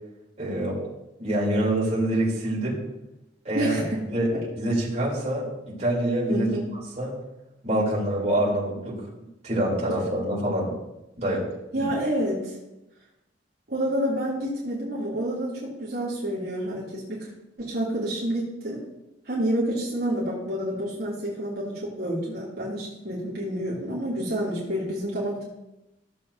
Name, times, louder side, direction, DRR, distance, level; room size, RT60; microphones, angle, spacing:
voice 1, 0.4-0.8 1.2-2.8 3.5-3.7 4.1-4.3 4.6-6.5 7.0-7.1 7.6-9.0 9.4-10.7 11.2-11.4 11.7-11.9, right 1 dB, 40° right, -5 dB, 3.6 m, -25 dB
voice 2, 3.5-4.0 4.3-4.4 6.3-6.7 11.7-12.5 13.7-17.3 17.6-18.8 19.2-25.4, right 1 dB, 60° right, -8 dB, 3.0 m, -28 dB
15.5 x 7.6 x 2.8 m, 0.93 s
head